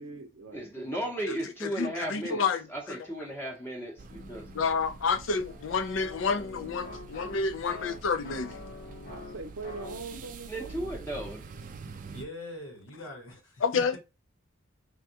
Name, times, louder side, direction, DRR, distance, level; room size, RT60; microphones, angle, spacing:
voice 1, 0.0-1.0 9.0-11.0, right 3 dB, 85° right, 0.6 m, -42 dB
voice 2, 0.5-4.5 10.5-11.5, right 1 dB, 10° left, 0.7 m, -35 dB
voice 3, 1.8-3.0 4.5-8.6 13.6-14.0, left 5 dB, 70° left, 0.4 m, -29 dB
sound 1, 4.0-12.2, right 4 dB, 40° right, 0.3 m, -46 dB
sound 2, 4.1-10.1, left 3 dB, 45° left, 0.7 m, -46 dB
voice 4, 12.1-14.0, left 1 dB, 90° left, 1.3 m, -43 dB
3.4 x 2.3 x 2.7 m
head